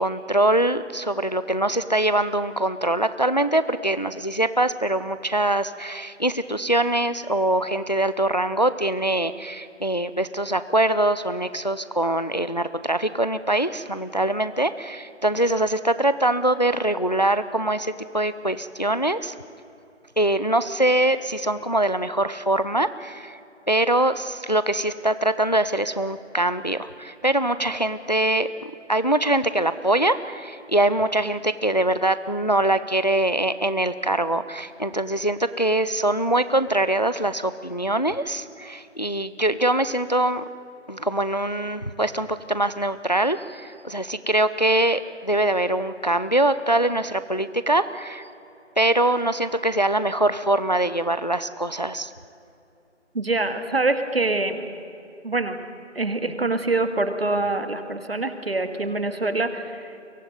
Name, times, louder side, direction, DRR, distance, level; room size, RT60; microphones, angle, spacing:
voice 1, 0.0-19.3 20.2-23.4 23.7-40.4 40.9-48.3 48.8-52.1, right 1 dB, 35° left, 13 dB, 0.6 m, -23 dB
voice 2, 53.1-54.6 55.2-55.6 55.9-59.9, right 2 dB, 55° right, 9 dB, 2.2 m, -25 dB
23.0 x 18.0 x 9.4 m, 2.7 s
figure-of-eight pair, 170°, 37 cm